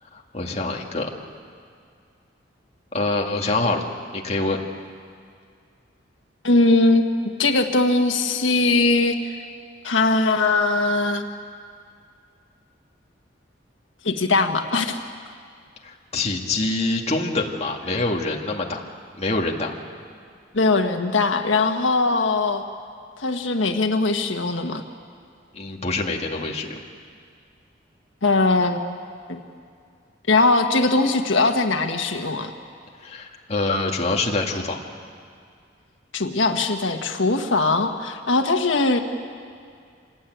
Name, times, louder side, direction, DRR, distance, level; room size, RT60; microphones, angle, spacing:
voice 1, 0.0-1.1 2.9-3.8 4.1-4.6 15.8-18.8 19.2-19.7 25.5-26.8 33.0-34.8, left 2 dB, 35° left, 0 dB, 2.1 m, -25 dB
voice 2, 6.4-7.1 7.4-9.4 9.8-11.2 14.0-15.0 20.5-22.6 23.2-24.8 28.2-28.8 29.3-29.4 30.3-32.5 36.1-39.0, left 3 dB, 85° left, 5 dB, 1.5 m, -20 dB
26.0 x 19.5 x 9.3 m, 2.2 s
head